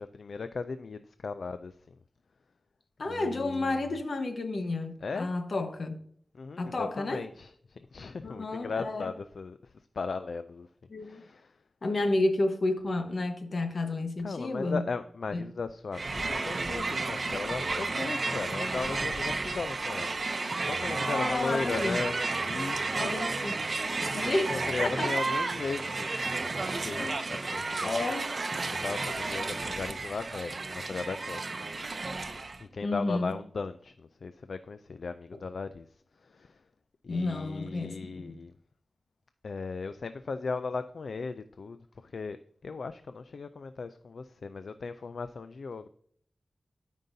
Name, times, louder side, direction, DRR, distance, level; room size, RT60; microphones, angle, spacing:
voice 1, 0.0-2.0 3.1-3.8 5.0-5.3 6.3-10.7 11.0-11.6 14.2-20.1 20.6-23.1 24.0-27.9 28.2-31.5 32.6-35.9 36.2-36.6 37.0-38.5 39.4-42.4 42.6-45.9, left 4 dB, 85° left, 0.3 m, -37 dB
voice 2, 3.0-6.0 6.6-7.2 8.2-9.1 10.9-11.3 11.8-14.8 15.3-15.5 21.0-22.0 22.9-23.6 24.1-25.1 27.0-27.1 27.8-28.3 32.8-33.3 37.1-38.3, left 2 dB, 70° left, 1.1 m, -31 dB
Crowd, 15.9-32.6, right 3 dB, 55° right, 0.7 m, -32 dB
13.0 x 5.4 x 2.7 m
wide cardioid pair, 80°, 0 cm